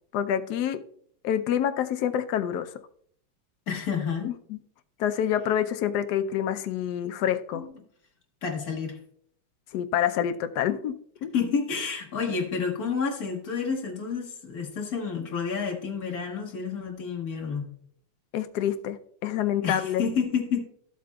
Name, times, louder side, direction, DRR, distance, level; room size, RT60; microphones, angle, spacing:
voice 1, 0.1-0.8 1.2-2.7 4.2-4.6 5.0-7.6 9.7-10.9 11.2-11.3 18.3-20.0, left 10 dB, 70° left, 10 dB, 1.0 m, -27 dB
voice 2, 3.7-4.3 7.5-7.7 8.4-9.0 11.3-17.7 19.6-20.6, left 6 dB, 50° left, 1 dB, 1.9 m, -29 dB
13.5 x 7.6 x 2.3 m, 0.62 s
omnidirectional pair, 2.2 m